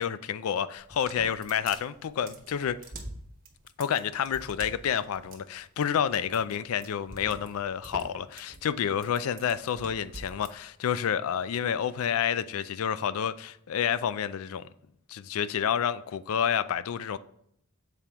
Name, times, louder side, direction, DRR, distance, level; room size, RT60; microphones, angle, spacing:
voice 1, 0.0-2.8 3.8-14.7 15.1-17.2, left 8 dB, 70° left, 0.4 m, -29 dB
sound 1, 0.8-10.5, right 2 dB, 45° right, 1.1 m, -45 dB
7.0 x 4.4 x 3.5 m
head